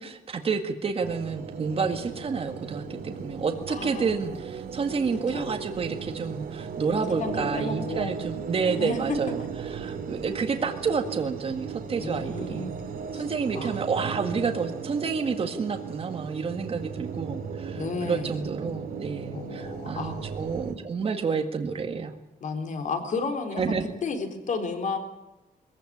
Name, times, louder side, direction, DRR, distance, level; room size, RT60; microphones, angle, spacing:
voice 1, 0.0-12.7 13.1-22.2 23.6-23.9, right 5 dB, 40° right, 5 dB, 1.9 m, -29 dB
sound 1, 1.0-20.7, right 6 dB, 70° right, 3.2 m, -36 dB
voice 2, 3.7-4.1 5.3-5.6 7.2-8.3 8.8-9.2 12.0-12.7 13.1-13.2 13.5-13.8 17.8-18.3 19.3-20.1 22.4-25.0, left 4 dB, 55° left, 5 dB, 3.9 m, -32 dB
22.5 x 15.5 x 10.0 m, 1.0 s
wide cardioid pair, 150°, 16 cm